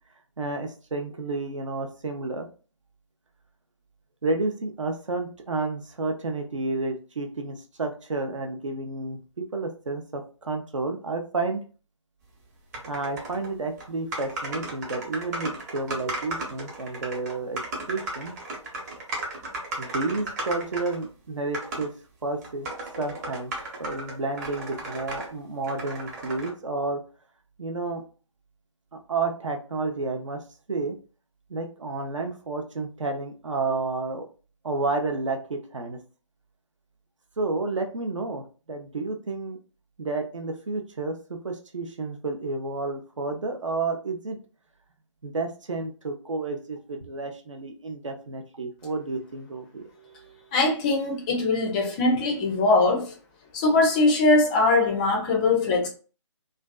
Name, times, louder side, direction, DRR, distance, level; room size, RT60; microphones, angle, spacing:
voice 1, 0.4-2.5 4.2-11.6 12.9-17.6 17.9-18.3 19.8-21.9 22.2-22.7 23.0-23.5 23.8-27.0 27.6-28.0 29.1-30.4 30.7-30.9 31.5-34.2 34.6-36.0 37.4-38.4 38.7-39.6 40.0-44.4 45.2-50.4, right 3 dB, 75° right, 0.6 m, -31 dB
sound 1, 12.7-13.5 13.8-13.9 14.1-21.1 21.5-21.9 22.4-25.3 25.6-26.5, right 2 dB, 35° right, 0.8 m, -35 dB
voice 2, 50.5-53.1 53.5-55.9, left 3 dB, 15° left, 0.4 m, -21 dB
2.4 x 2.3 x 2.2 m
figure-of-eight pair, 145°, 16 cm